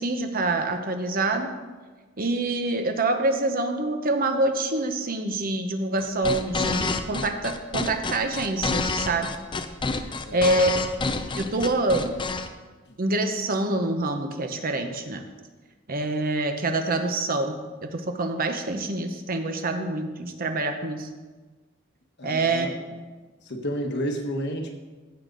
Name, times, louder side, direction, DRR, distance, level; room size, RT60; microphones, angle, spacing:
voice 1, 0.0-1.5 2.2-9.3 10.3-10.7 11.4-12.2 13.0-15.2 15.9-17.6 17.8-21.1 22.2-22.7, right 2 dB, 45° right, 6 dB, 0.8 m, -26 dB
sound 1, 6.0-12.5, left 3 dB, 25° left, 0.5 m, -28 dB
voice 2, 10.3-10.7 12.9-13.0 22.2-22.7 23.4-24.7, equal, 55° left, 3 dB, 1.3 m, -31 dB
15.0 x 6.6 x 3.9 m, 1.3 s
head